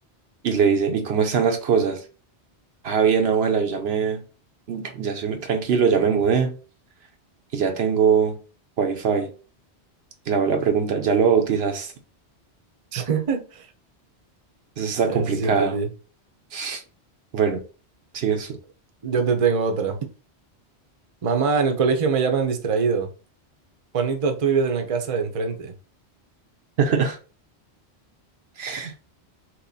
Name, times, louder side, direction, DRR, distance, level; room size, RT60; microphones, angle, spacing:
voice 1, 0.4-2.0 2.8-4.2 4.7-6.6 7.5-8.4 8.8-9.3 10.3-11.9 14.8-15.8 16.5-16.8 17.3-17.6 18.1-18.5 26.8-27.2 28.6-28.9, right 6 dB, 70° right, 0.9 m, -22 dB
voice 2, 12.9-13.6 15.1-15.9 19.0-20.0 21.2-23.1 23.9-25.7, right 5 dB, 35° right, 0.7 m, -23 dB
3.0 x 3.0 x 4.0 m
omnidirectional pair, 1.1 m